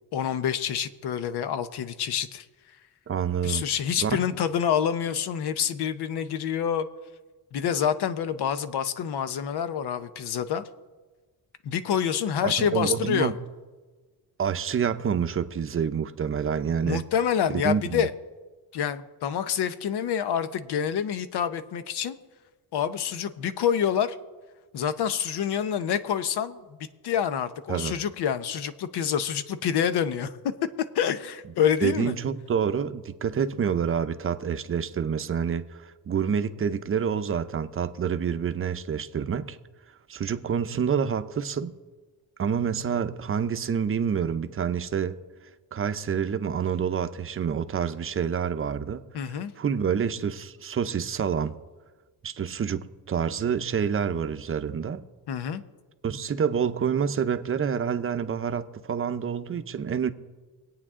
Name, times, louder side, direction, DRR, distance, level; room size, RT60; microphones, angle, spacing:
voice 1, 0.1-2.4 3.4-6.9 7.5-10.7 11.6-13.3 16.8-18.1 18.7-22.2 22.7-24.2 24.7-26.6 27.0-30.3 30.9-32.1 49.1-49.5 55.3-55.6, left 8 dB, 75° left, 0.9 m, -27 dB
voice 2, 3.1-3.6 4.0-4.2 12.4-13.4 14.4-17.0 17.5-18.1 27.7-28.0 31.8-39.6 40.1-41.7 42.4-45.2 45.7-49.0 49.3-51.6 52.2-55.0 56.0-60.1, right 7 dB, 35° right, 0.7 m, -27 dB
24.5 x 8.8 x 3.7 m
cardioid pair, 130°, 40 cm